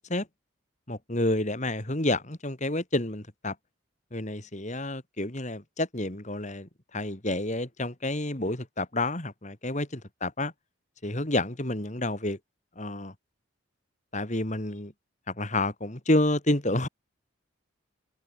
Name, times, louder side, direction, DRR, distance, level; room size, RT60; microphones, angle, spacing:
voice 1, 0.9-3.5 4.1-10.5 11.0-12.4 12.8-13.1 14.1-14.9 15.3-16.9, left 1 dB, 35° left, 2.7 m, -29 dB
head